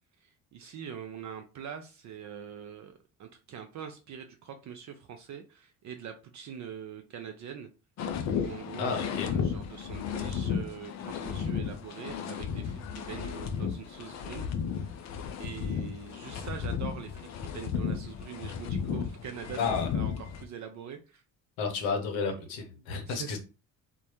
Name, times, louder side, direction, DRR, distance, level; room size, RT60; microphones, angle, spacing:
voice 1, 0.2-2.9 3.2-7.7 8.3-14.9 15.4-19.7 19.9-21.2 23.1-23.4, right 8 dB, 40° right, 6 dB, 0.4 m, -43 dB
sound 1, 8.0-20.4, left 7 dB, 40° left, 0.4 m, -34 dB
voice 2, 8.8-9.3 19.6-19.9 21.6-23.4, left 5 dB, 70° left, 4 dB, 0.8 m, -31 dB
2.1 x 2.1 x 2.9 m, 0.32 s
hypercardioid pair, 50°, 48 cm